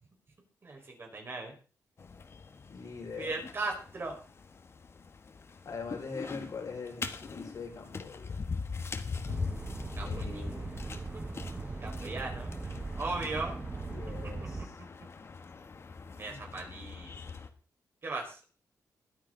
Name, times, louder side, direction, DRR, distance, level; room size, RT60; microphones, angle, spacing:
voice 1, 0.6-1.5 3.2-4.2 10.0-10.2 11.8-12.5 13.0-13.5 16.1-17.1 18.0-18.4, right 3 dB, 40° right, 2 dB, 4.8 m, -37 dB
sound 1, 2.0-17.5, left 4 dB, 45° left, 1.4 m, -42 dB
voice 2, 2.7-3.3 5.6-8.5 10.0-10.8 13.8-14.8 16.3-16.4, left 4 dB, 65° left, 1 dB, 5.1 m, -42 dB
sound 2, 9.3-14.7, right 3 dB, 20° right, 1.2 m, -39 dB
21.0 x 9.1 x 3.9 m, 0.37 s
cardioid pair, 105°, 6 cm